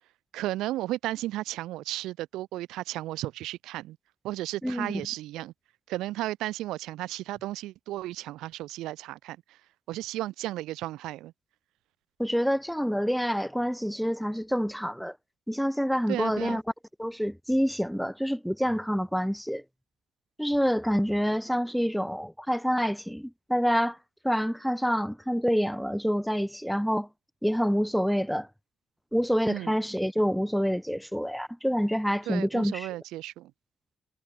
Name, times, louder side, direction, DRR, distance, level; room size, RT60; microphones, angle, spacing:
voice 1, 0.3-4.0 4.2-5.5 5.9-9.4 9.9-11.3 16.1-16.6 29.5-29.8 32.3-33.5, right 16 dB, 85° right, 1.6 m, -34 dB
voice 2, 4.6-5.0 12.2-15.2 15.5-16.6 17.0-19.6 20.4-24.0 24.2-27.1 27.4-28.5 29.1-32.9, equal, ahead, 0.5 m, -27 dB
supercardioid pair, 75°, 0 cm